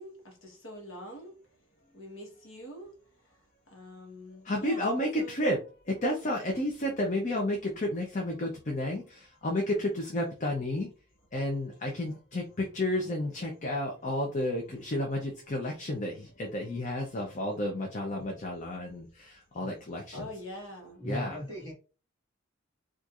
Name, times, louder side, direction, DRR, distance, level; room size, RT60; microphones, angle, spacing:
voice 1, 0.0-1.5 1.9-5.6 19.2-19.3 20.1-21.1, equal, 70° left, 1.1 m, -46 dB
voice 2, 4.5-5.6 6.0-9.0 9.4-10.9 11.3-19.1 19.6-20.3 21.0-21.4, left 1 dB, 35° left, 0.6 m, -31 dB
voice 3, 21.0-21.7, equal, 20° left, 1.8 m, -36 dB
4.3 x 2.5 x 2.4 m
head